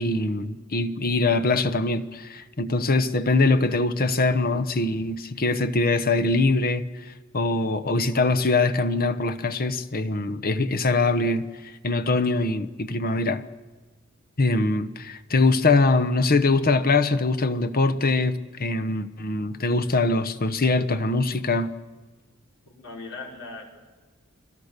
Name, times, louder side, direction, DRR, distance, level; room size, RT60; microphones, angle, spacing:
voice 1, 0.0-6.8 7.3-11.5 11.8-13.4 14.4-21.7, left 3 dB, 45° left, 1.1 m, -23 dB
voice 2, 22.7-23.6, left 3 dB, 75° left, 5.5 m, -38 dB
29.5 x 22.5 x 6.8 m
head